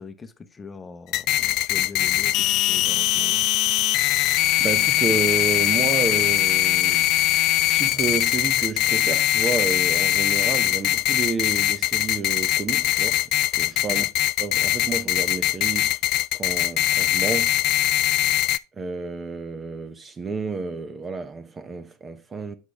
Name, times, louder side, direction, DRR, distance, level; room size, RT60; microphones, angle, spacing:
voice 1, 0.0-3.4 13.9-14.1, left 4 dB, 20° left, 0.9 m, -41 dB
sound 1, 1.1-18.6, left 16 dB, 50° left, 0.3 m, -21 dB
voice 2, 4.6-7.1 7.7-13.2 13.6-14.1 14.4-16.0 16.3-17.5 18.8-22.5, right 4 dB, 25° right, 0.9 m, -30 dB
8.0 x 6.3 x 3.5 m
hypercardioid pair, 85°, 0 cm